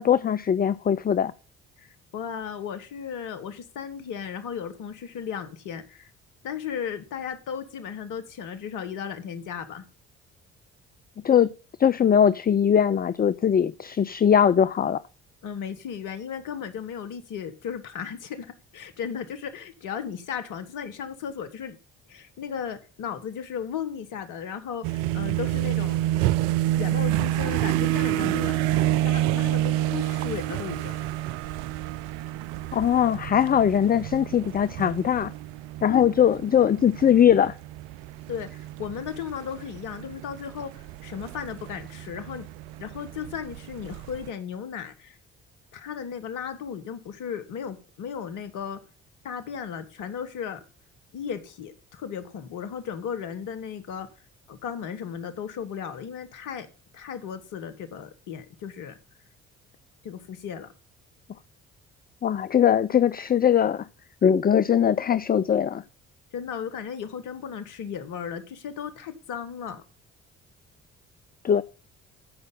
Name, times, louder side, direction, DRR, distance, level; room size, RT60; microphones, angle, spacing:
voice 1, 0.0-1.3 11.2-11.5 11.8-15.0 32.7-35.3 35.8-37.5 62.2-63.9 64.2-65.8 71.4-71.6, left 8 dB, 30° left, 0.5 m, -21 dB
voice 2, 2.1-6.1 6.4-9.8 15.4-21.8 22.1-26.3 26.8-28.6 29.0-31.0 35.9-36.0 38.3-40.7 41.0-42.5 42.8-45.2 45.7-48.8 49.2-50.6 51.1-54.1 54.5-56.7 56.9-59.0 60.0-60.7 66.3-69.8, left 7 dB, 70° left, 1.5 m, -35 dB
sound 1, 24.8-44.3, right 14 dB, 80° right, 0.5 m, -29 dB
14.5 x 5.5 x 5.4 m
hypercardioid pair, 50°, 32 cm